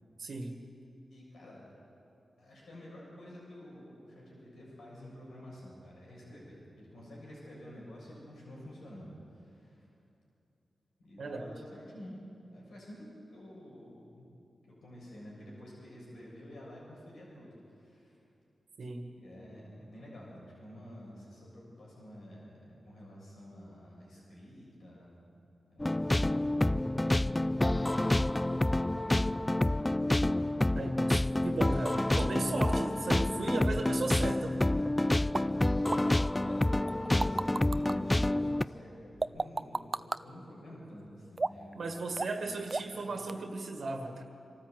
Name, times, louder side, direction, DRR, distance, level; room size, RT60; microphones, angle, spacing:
voice 1, 0.2-0.5 11.2-11.5 18.8-19.1 30.7-34.7 41.7-44.2, right 3 dB, 70° right, 3 dB, 1.8 m, -36 dB
voice 2, 1.1-1.7 2.4-9.9 11.0-12.2 12.5-14.3 14.7-18.2 19.2-25.1 25.7-26.6 26.9-28.4 28.8-29.7 36.5-42.3 42.7-43.1, equal, 80° left, -4 dB, 7.1 m, -50 dB
sound 1, 25.8-38.6, left 1 dB, 20° left, 0.4 m, -28 dB
sound 2, 35.3-35.4 35.9-36.0 36.9-37.9 39.2-40.2 41.4-41.7 42.2-42.4 42.7-43.0 43.3-43.4, right 3 dB, 45° right, 0.5 m, -33 dB
25.5 x 13.5 x 8.0 m, 2.7 s
cardioid pair, 45°, 0 cm